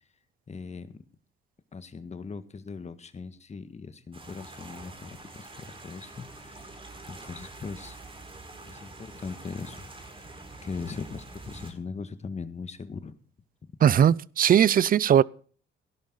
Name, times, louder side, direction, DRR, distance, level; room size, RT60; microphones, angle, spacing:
voice 1, 0.5-0.9 1.7-8.0 8.7-9.9 10.2-10.3 10.6-13.1, left 5 dB, 35° left, 1.6 m, -40 dB
sound 1, 4.1-11.7, right 2 dB, 25° right, 4.4 m, -46 dB
voice 2, 13.8-15.2, right 9 dB, 45° right, 0.5 m, -19 dB
17.5 x 11.0 x 3.9 m
cardioid pair, 90°, 20 cm